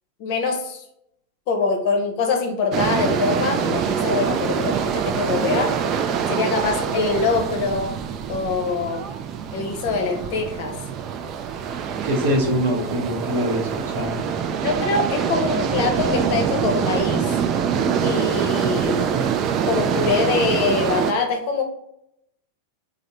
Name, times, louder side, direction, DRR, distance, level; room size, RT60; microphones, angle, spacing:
voice 1, 0.2-0.8 1.5-5.8 6.3-8.0 8.3-9.0 9.5-10.8 14.6-17.4 18.0-19.1 19.7-21.6, left 4 dB, 45° left, 4 dB, 0.7 m, -24 dB
sound 1, 2.7-21.1, right 7 dB, 35° right, 0.3 m, -24 dB
voice 2, 12.0-14.2, equal, 60° right, -1 dB, 0.9 m, -23 dB
3.6 x 2.0 x 4.0 m, 0.78 s
figure-of-eight pair, 90°, 0 cm